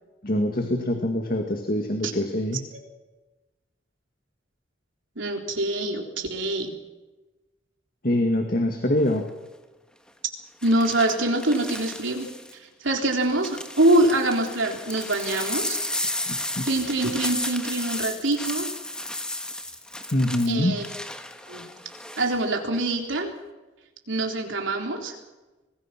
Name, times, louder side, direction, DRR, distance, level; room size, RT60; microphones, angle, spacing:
voice 1, 0.2-2.6 8.0-9.3 16.3-16.7 20.1-20.8, left 1 dB, 45° left, 4 dB, 2.0 m, -24 dB
voice 2, 5.2-6.7 10.6-12.3 12.8-15.8 16.6-18.7 20.5-20.8 21.5-21.6 22.2-23.3 24.1-25.1, right 2 dB, 80° right, 2 dB, 3.8 m, -24 dB
sound 1, 9.0-9.3 10.6-12.5 13.1-22.4 22.7-23.2, left 1 dB, 5° left, 1.3 m, -34 dB
25.0 x 19.5 x 6.1 m, 1.1 s
head